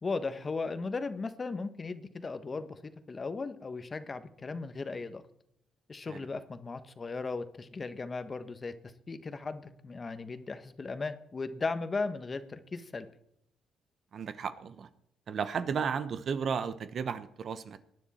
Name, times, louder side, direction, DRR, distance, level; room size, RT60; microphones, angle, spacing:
voice 1, 0.0-2.8 3.1-5.2 5.9-8.7 9.1-13.1, left 4 dB, 30° left, 11 dB, 1.2 m, -36 dB
voice 2, 14.1-14.9 15.3-17.8, right 6 dB, 55° right, 13 dB, 0.9 m, -34 dB
18.5 x 10.0 x 4.3 m, 0.75 s
cardioid pair, 90°, 0 cm